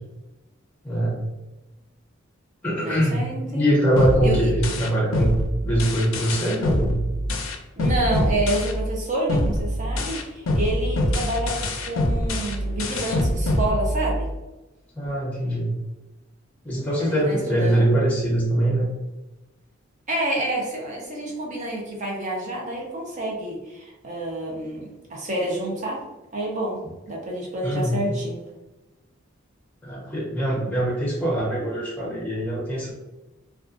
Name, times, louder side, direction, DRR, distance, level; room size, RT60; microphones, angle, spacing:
voice 1, 0.8-1.2 2.6-3.3 3.5-7.1 14.9-15.7 16.6-18.9 27.6-28.1 29.8-32.9, right 1 dB, 10° left, -4 dB, 0.7 m, -23 dB
voice 2, 2.8-3.6 4.2-4.5 7.7-11.6 11.9-14.3 17.0-18.0 20.1-26.0 26.3-26.8 27.1-28.4, right 1 dB, 40° right, -2 dB, 0.6 m, -28 dB
sound 1, 4.0-9.0 9.3-14.3, left 1 dB, 90° left, 0.4 m, -25 dB
2.5 x 2.3 x 2.4 m, 1.0 s
head